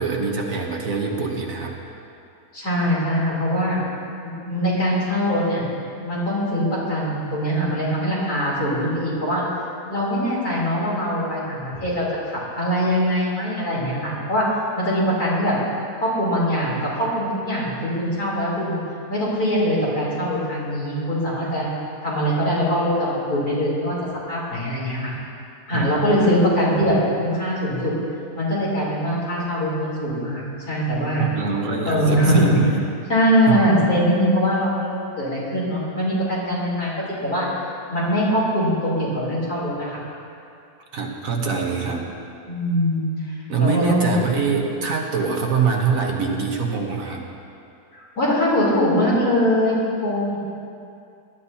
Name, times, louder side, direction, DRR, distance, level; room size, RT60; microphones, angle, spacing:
voice 1, 0.0-1.7 25.7-26.0 31.2-32.8 33.5-33.6 40.9-42.1 43.5-47.2, right 5 dB, 60° right, 0 dB, 1.6 m, -24 dB
voice 2, 2.5-3.8 4.2-5.6 6.0-9.4 9.9-14.5 14.8-15.6 16.0-18.8 19.1-21.7 22.0-23.9 24.3-25.1 25.7-27.9 28.3-31.3 31.9-32.5 33.1-37.5 37.9-40.0 42.5-43.1 43.6-44.1 47.9-50.4, equal, 70° left, -7 dB, 3.9 m, -22 dB
19.0 x 11.5 x 2.8 m, 2.5 s
omnidirectional pair, 1.7 m